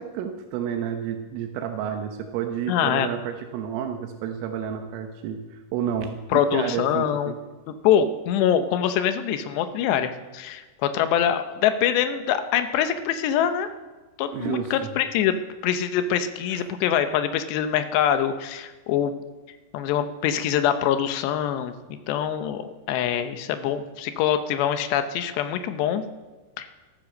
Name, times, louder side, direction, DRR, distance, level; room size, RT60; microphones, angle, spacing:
voice 1, 0.0-7.4 14.3-14.9 16.5-16.7, right 8 dB, 90° right, 4 dB, 3.7 m, -30 dB
voice 2, 2.7-3.1 6.3-7.3 7.7-13.7 14.2-15.4 15.6-19.1 19.7-21.7 22.1-26.0 26.6-26.7, left 9 dB, 75° left, 9 dB, 2.8 m, -24 dB
14.5 x 13.5 x 6.5 m, 1.2 s
omnidirectional pair, 5.7 m